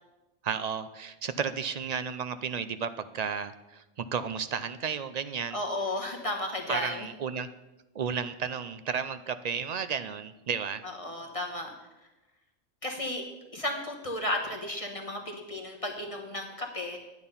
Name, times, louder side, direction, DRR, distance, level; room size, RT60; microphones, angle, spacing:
voice 1, 0.4-5.6 6.7-7.5 7.9-10.8, right 6 dB, 50° right, 11 dB, 0.5 m, -33 dB
voice 2, 5.5-7.1 10.8-11.7 12.8-17.0, left 1 dB, 30° left, 2 dB, 1.3 m, -34 dB
10.5 x 8.8 x 5.5 m, 1.0 s
omnidirectional pair, 1.2 m